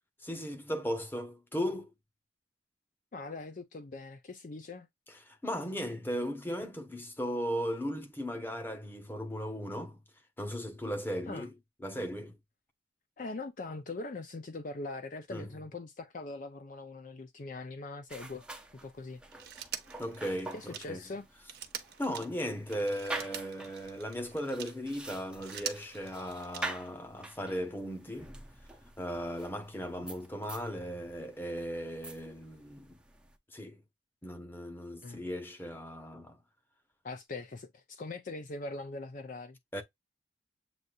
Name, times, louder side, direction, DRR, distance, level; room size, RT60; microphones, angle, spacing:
voice 1, 0.2-1.9 5.1-10.0 10.4-11.5 11.8-12.4 15.3-15.5 20.0-21.0 22.0-28.4 29.0-33.0 33.5-33.8 34.2-36.4 39.7-39.8, equal, 10° left, 1.0 m, -37 dB
voice 2, 3.1-4.9 11.3-11.5 13.2-18.5 18.8-19.2 20.5-21.3 35.0-35.2 37.0-39.6, left 3 dB, 45° left, 0.5 m, -41 dB
sound 1, 18.1-33.4, right 2 dB, 5° right, 0.6 m, -47 dB
Telephone, 19.3-24.8 25.2-27.0 28.3-28.4, right 9 dB, 55° right, 0.9 m, -45 dB
7.9 x 2.7 x 2.4 m
head